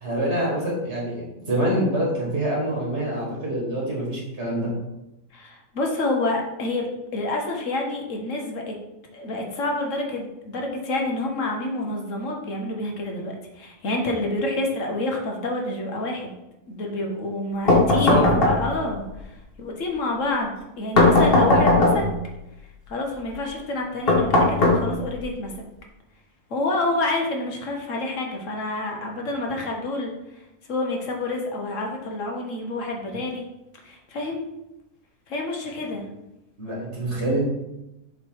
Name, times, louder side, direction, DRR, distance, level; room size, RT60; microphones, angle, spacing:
voice 1, 0.0-4.7 17.9-18.4 36.6-37.4, right 1 dB, 45° right, -3 dB, 1.7 m, -25 dB
voice 2, 5.3-8.8 9.1-16.3 16.7-22.0 22.9-25.5 26.5-30.1 30.7-33.4 33.8-34.4 35.3-36.1, left 2 dB, 60° left, 1 dB, 1.2 m, -28 dB
sound 1, 17.7-18.9 21.0-22.2 24.1-25.2, left 2 dB, 40° left, 1.2 m, -18 dB
7.2 x 3.2 x 4.6 m, 0.92 s
omnidirectional pair, 1.6 m